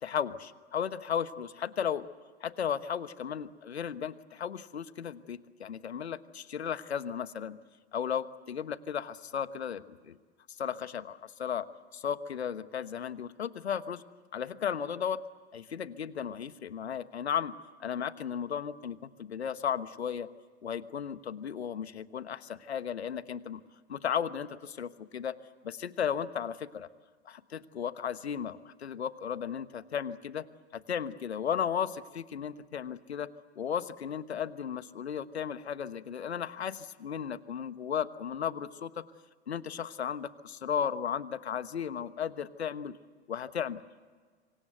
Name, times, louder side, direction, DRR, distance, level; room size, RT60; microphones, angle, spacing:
voice 1, 0.0-2.1 2.4-7.6 7.9-10.2 10.5-11.7 11.9-14.0 14.3-15.2 15.5-20.3 20.6-23.6 23.9-25.4 25.6-26.9 27.2-30.4 30.7-33.3 33.6-39.0 39.5-43.0 43.3-43.8, left 8 dB, 75° left, 14 dB, 1.2 m, -35 dB
26.5 x 24.5 x 8.0 m, 1.5 s
figure-of-eight pair, 105°, 33 cm